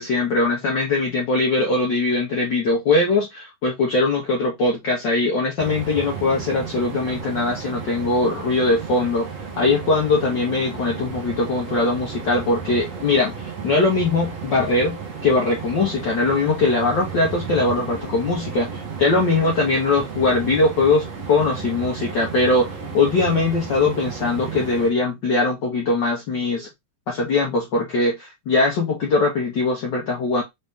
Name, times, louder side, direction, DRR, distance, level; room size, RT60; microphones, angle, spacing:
voice 1, 0.0-9.3 9.6-26.7 27.1-30.4, left 3 dB, 80° left, 1.0 m, -21 dB
sound 1, 5.6-24.9, right 6 dB, 60° right, 0.8 m, -33 dB
5.1 x 2.8 x 3.5 m
omnidirectional pair, 3.3 m